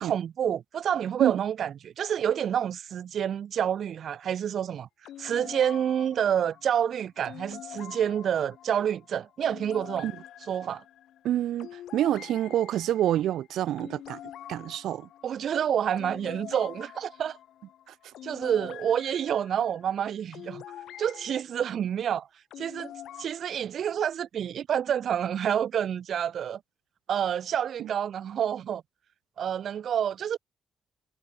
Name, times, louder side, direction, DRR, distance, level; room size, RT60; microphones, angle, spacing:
voice 1, 0.0-4.9 5.2-10.1 10.5-10.8 15.2-17.4 18.2-20.6 21.0-22.3 22.6-22.9 23.2-26.6 27.1-28.8 29.4-30.4, right 9 dB, 50° right, 2.9 m, -28 dB
sound 1, 5.0-21.4 22.5-23.3, left 11 dB, 75° left, 3.8 m, -46 dB
voice 2, 11.2-14.2 14.5-15.1 27.8-27.9, right 12 dB, 80° right, 2.5 m, -27 dB
cardioid pair, 170°, 0 cm